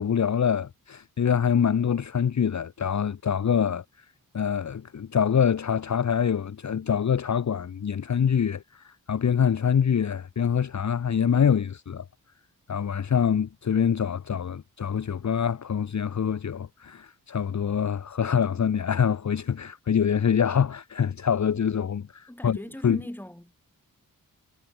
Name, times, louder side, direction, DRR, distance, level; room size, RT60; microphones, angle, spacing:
voice 1, 0.0-3.8 4.3-12.1 12.7-23.0, left 7 dB, 50° left, 1.1 m, -25 dB
voice 2, 22.3-23.5, left 1 dB, 5° left, 7.3 m, -40 dB
wide cardioid pair, 120°, 35 cm